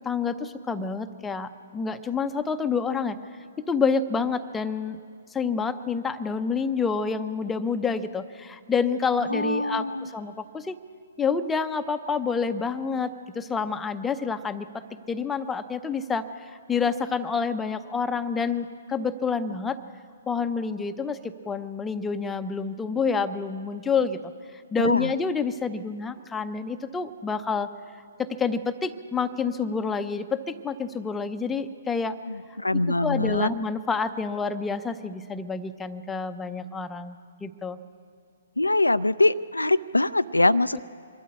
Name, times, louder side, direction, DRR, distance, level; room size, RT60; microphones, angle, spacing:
voice 1, 0.1-3.2 3.7-5.0 5.3-10.8 11.2-14.8 15.1-19.8 20.3-24.2 24.7-27.7 28.2-32.1 32.7-37.8, left 5 dB, 10° left, 8 dB, 0.7 m, -28 dB
voice 2, 9.2-10.1 24.8-25.1 32.3-33.5 38.6-40.8, left 2 dB, 80° left, 13 dB, 0.4 m, -23 dB
23.0 x 13.0 x 8.6 m, 2.2 s
figure-of-eight pair, 125°, 0 cm